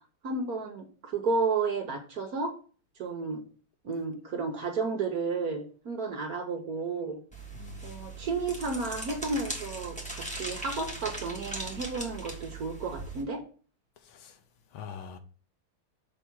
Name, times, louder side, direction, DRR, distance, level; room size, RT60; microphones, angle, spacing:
voice 1, 0.2-2.5 3.0-3.4 3.8-7.2 7.8-13.4, right 4 dB, 55° right, 1.1 m, -32 dB
sound 1, 7.3-13.2, right 2 dB, 5° left, 1.2 m, -39 dB
voice 2, 7.5-7.9 14.0-14.4 14.7-15.2, left 7 dB, 80° left, 1.6 m, -44 dB
6.3 x 3.4 x 6.0 m
omnidirectional pair, 2.3 m